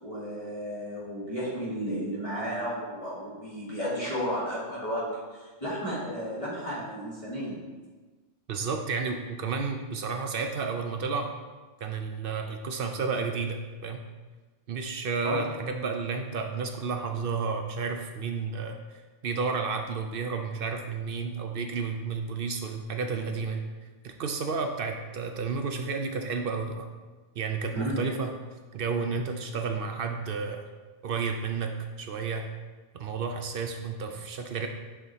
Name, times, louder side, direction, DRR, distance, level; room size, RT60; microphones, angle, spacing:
voice 1, 0.0-7.7 15.2-15.4 27.7-28.1, equal, 25° left, -10 dB, 2.1 m, -33 dB
voice 2, 8.5-11.3 11.8-14.0 14.7-18.8 19.2-23.6 24.0-26.9 27.4-28.3 28.7-30.6 31.0-32.5 33.0-34.7, right 5 dB, 60° right, 4 dB, 0.6 m, -31 dB
7.7 x 3.4 x 4.0 m, 1.3 s
omnidirectional pair, 1.2 m